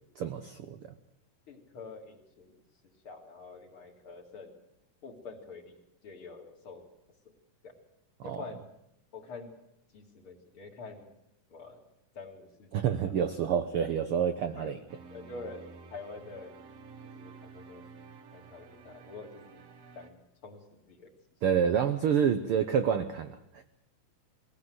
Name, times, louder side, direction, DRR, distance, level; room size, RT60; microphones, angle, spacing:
voice 1, 0.2-0.8 8.3-8.4 12.7-14.8 21.4-23.6, right 8 dB, 75° right, 9 dB, 1.3 m, -28 dB
voice 2, 1.5-4.5 5.0-5.8 6.0-6.9 7.6-7.7 8.2-8.6 9.1-9.5 9.9-11.1 11.5-11.8 12.1-12.7 13.0-13.1 14.6-14.7 15.1-16.6 17.0-19.6 19.9-21.1, left 3 dB, 45° left, 3 dB, 3.1 m, -47 dB
sound 1, 14.9-20.1, right 4 dB, 55° right, 2.4 m, -51 dB
22.0 x 16.5 x 7.9 m, 0.82 s
omnidirectional pair, 3.6 m